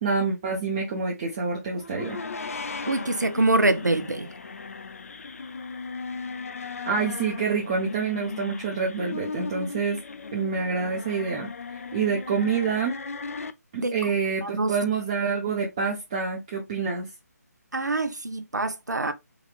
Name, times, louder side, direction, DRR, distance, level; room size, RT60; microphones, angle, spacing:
voice 1, 0.0-2.2 6.9-10.0 10.3-13.0 13.7-17.1, right 5 dB, 25° right, 0.6 m, -27 dB
sound 1, 1.7-13.5, left 4 dB, 55° left, 0.4 m, -37 dB
voice 2, 2.9-4.3 13.8-13.9 14.4-14.7 17.7-19.1, right 2 dB, 80° right, 0.5 m, -24 dB
3.6 x 2.3 x 3.1 m
figure-of-eight pair, 150°, 9 cm